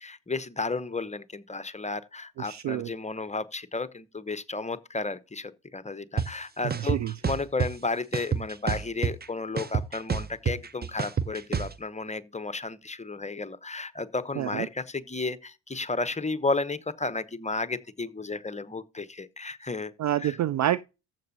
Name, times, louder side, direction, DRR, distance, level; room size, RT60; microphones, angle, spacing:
voice 1, 0.0-19.9 20.2-20.4, left 3 dB, 15° left, 0.9 m, -33 dB
voice 2, 2.5-2.9 6.8-7.1 14.4-14.7 20.0-20.8, right 12 dB, 40° right, 0.4 m, -27 dB
sound 1, 6.2-6.3 6.7-7.7 8.1-9.3 9.6-11.7, right 6 dB, 20° right, 0.8 m, -28 dB
14.5 x 6.1 x 2.8 m
hypercardioid pair, 45°, 48 cm